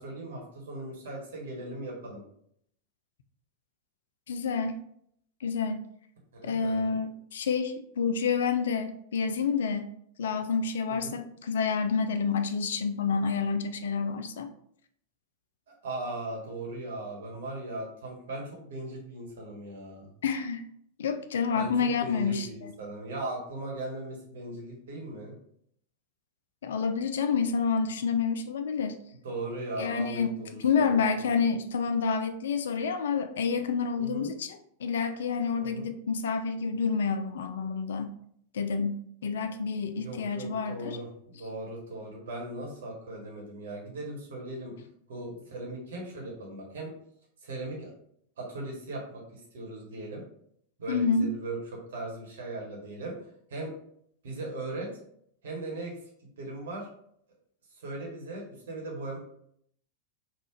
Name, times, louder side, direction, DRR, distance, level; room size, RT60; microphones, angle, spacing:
voice 1, 0.0-2.2 6.3-7.0 10.9-11.2 15.8-20.1 21.5-21.7 22.0-25.3 29.2-31.3 34.0-34.3 35.6-35.9 39.9-44.7 45.1-46.9 47.4-47.9 48.4-50.2 50.8-53.2 53.5-53.7 54.2-54.9 55.4-56.0 56.4-56.9 57.7-59.2, right 2 dB, 60° right, -1 dB, 1.1 m, -38 dB
voice 2, 4.3-4.8 5.4-5.9 6.4-9.9 10.2-14.5 20.2-20.6 21.0-22.7 26.6-29.0 29.8-38.1 38.5-41.0 50.9-51.3, left 5 dB, 60° left, 9 dB, 0.3 m, -29 dB
3.6 x 2.4 x 3.0 m, 0.68 s
figure-of-eight pair, 90°, 0 cm